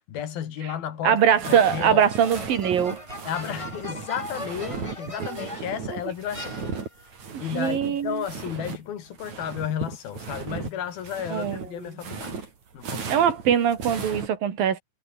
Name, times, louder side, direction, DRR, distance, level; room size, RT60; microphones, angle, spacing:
voice 1, 0.1-2.1 3.3-6.8 7.4-12.5 12.7-13.3, left 9 dB, 85° left, 4.2 m, -33 dB
voice 2, 1.0-3.0 5.2-5.5 7.3-8.2 11.3-11.7 13.1-14.8, right 8 dB, 75° right, 4.3 m, -22 dB
sound 1, 1.2-8.8 9.1-14.3, right 5 dB, 55° right, 5.3 m, -36 dB
sound 2, 1.4-5.8 6.3-7.1, left 1 dB, 10° left, 4.4 m, -40 dB
omnidirectional pair, 4.1 m